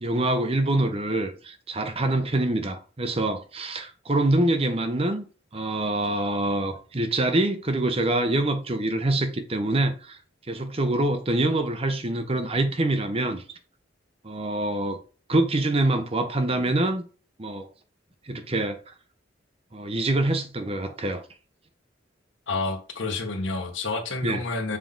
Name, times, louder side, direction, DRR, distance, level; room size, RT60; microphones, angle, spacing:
voice 1, 0.0-5.2 5.5-10.2 10.5-13.4 14.2-15.0 15.3-17.0 17.4-17.7 18.3-18.9 19.7-21.2 24.2-24.4, right 2 dB, 30° right, 0.9 m, -25 dB
voice 2, 22.5-24.8, left 3 dB, 80° left, 1.4 m, -29 dB
7.2 x 3.9 x 3.8 m
head